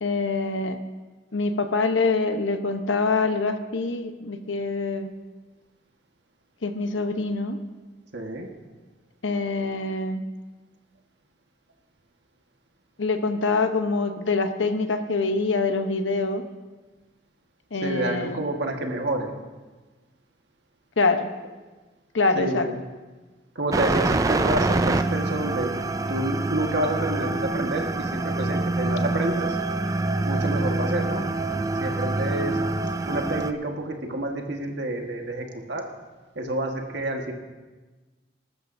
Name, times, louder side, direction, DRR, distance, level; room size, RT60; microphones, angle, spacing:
voice 1, 0.0-0.8 1.3-5.1 6.6-7.6 9.2-10.2 13.0-16.4 17.7-18.4 21.0-21.3 22.1-22.7, left 3 dB, 80° left, 7 dB, 0.9 m, -25 dB
voice 2, 8.1-8.5 17.8-19.3 22.3-22.8 23.5-25.7 26.1-29.6 30.3-31.3 31.5-32.6 33.1-35.9 36.3-37.3, right 1 dB, 60° right, 2 dB, 1.5 m, -29 dB
sound 1, 23.7-33.5, right 2 dB, 15° right, 0.3 m, -26 dB
21.5 x 12.5 x 2.7 m, 1.3 s
head